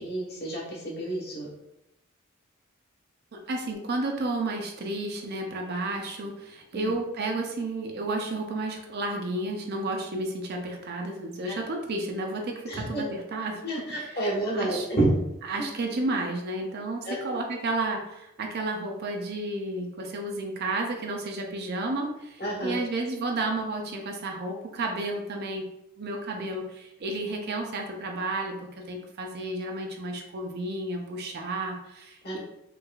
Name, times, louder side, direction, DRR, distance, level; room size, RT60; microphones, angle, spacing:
voice 1, 0.0-1.5 6.7-6.9 11.5-11.6 12.7-13.0 13.6-15.2 15.6-15.7 17.0-17.4 22.4-22.8 32.2-32.4, right 1 dB, 50° left, -4 dB, 1.3 m, -29 dB
voice 2, 3.3-13.6 14.5-14.8 15.5-25.7 26.0-32.4, right 2 dB, 50° right, 2 dB, 0.5 m, -32 dB
4.6 x 2.5 x 2.4 m, 0.87 s
head